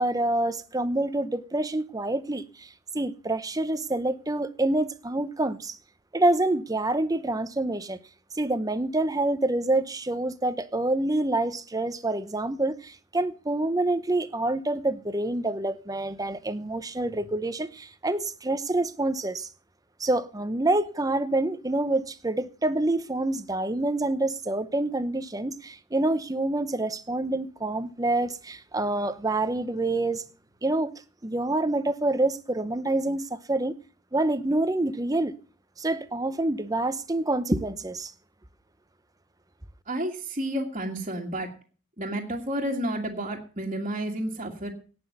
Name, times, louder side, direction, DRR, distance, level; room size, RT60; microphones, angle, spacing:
voice 1, 0.0-2.7 2.9-5.8 6.1-8.0 8.4-19.5 20.0-30.2 30.6-30.9 31.2-33.8 34.1-35.3 35.8-38.1, right 2 dB, 15° right, 0.8 m, -27 dB
voice 2, 39.9-41.5 42.0-44.7, right 1 dB, 30° right, 2.0 m, -31 dB
17.5 x 6.2 x 6.7 m
head